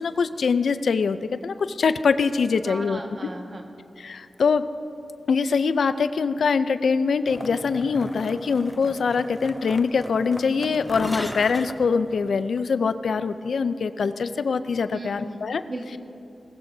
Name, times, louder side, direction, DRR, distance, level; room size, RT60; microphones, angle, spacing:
voice 1, 0.0-3.0 4.0-4.6 5.3-15.6, left 5 dB, 80° left, 12 dB, 0.4 m, -23 dB
voice 2, 2.6-3.6 14.9-15.4 15.7-16.0, right 2 dB, 45° right, 2 dB, 1.6 m, -36 dB
sound 1, 7.3-12.6, left 1 dB, 15° left, 0.6 m, -37 dB
19.0 x 15.0 x 2.7 m, 2.9 s
wide cardioid pair, 90°, 0 cm